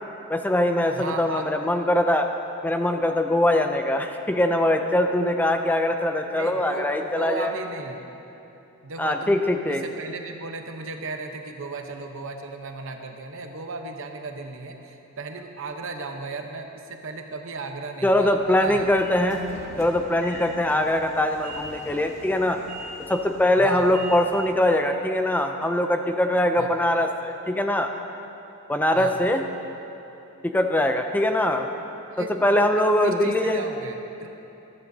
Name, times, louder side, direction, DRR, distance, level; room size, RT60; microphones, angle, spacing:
voice 1, 0.3-2.3 2.6-7.5 9.0-9.8 18.0-19.5 19.8-22.6 23.1-27.9 28.7-29.4 30.4-31.7 32.2-33.6, left 1 dB, 10° left, 5 dB, 0.4 m, -22 dB
voice 2, 0.9-1.5 6.4-8.1 8.8-9.4 9.7-18.9 23.6-23.9 26.6-26.7 28.9-29.2 32.1-32.3 33.0-34.3, right 3 dB, 65° right, 4 dB, 0.9 m, -35 dB
Train / Sliding door, 18.1-24.6, equal, 35° left, 1.4 m, -42 dB
14.0 x 13.0 x 2.7 m, 3.0 s
head